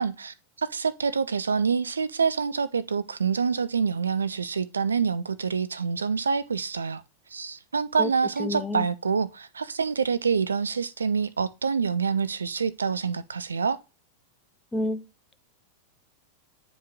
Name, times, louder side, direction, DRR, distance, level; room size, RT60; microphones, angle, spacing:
voice 1, 0.0-7.0 7.3-13.8, right 5 dB, 75° right, 0.4 m, -26 dB
voice 2, 8.4-8.9 14.7-15.0, left 1 dB, 10° left, 0.6 m, -28 dB
8.8 x 4.8 x 2.6 m
figure-of-eight pair, 90°, 0 cm